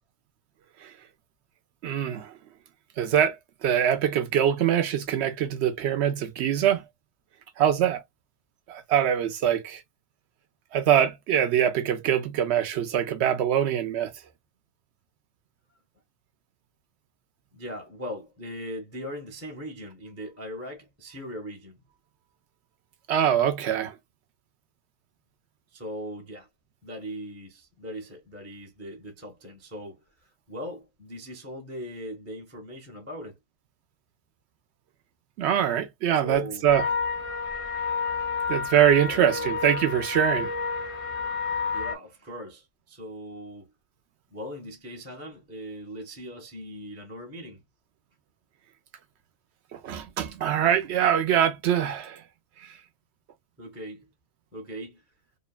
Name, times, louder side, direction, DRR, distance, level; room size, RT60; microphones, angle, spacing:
voice 1, 1.8-2.3 3.0-3.4 3.6-6.8 7.6-8.0 8.7-9.8 10.7-14.1 23.1-23.9 35.4-36.9 38.5-40.5 49.7-52.2, right 10 dB, 70° right, 0.8 m, -23 dB
voice 2, 17.5-21.8 25.7-26.5 26.8-30.0 30.5-33.4 36.2-36.7 38.2-38.3 39.0-39.6 41.7-43.7 44.3-47.6 53.6-54.1 54.5-55.0, equal, 15° right, 0.6 m, -39 dB
sound 1, 36.7-41.9, left 5 dB, 55° left, 0.3 m, -30 dB
2.7 x 2.2 x 2.3 m
omnidirectional pair, 1.3 m